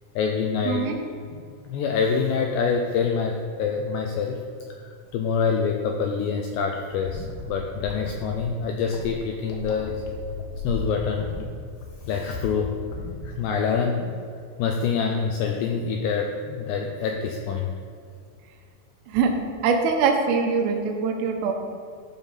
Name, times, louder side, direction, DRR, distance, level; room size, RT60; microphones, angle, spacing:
voice 1, 0.2-0.9 1.7-4.4 5.1-10.0 10.6-11.3 12.1-12.8 13.2-14.1 14.6-17.7, left 5 dB, 90° left, 2 dB, 2.4 m, -26 dB
voice 2, 0.7-1.0 19.1-19.3 19.6-21.5, right 5 dB, 85° right, 3 dB, 3.8 m, -23 dB
sound 1, 6.9-13.5, left 3 dB, 70° left, 2.6 m, -36 dB
14.0 x 5.7 x 5.7 m, 2.4 s
omnidirectional pair, 5.7 m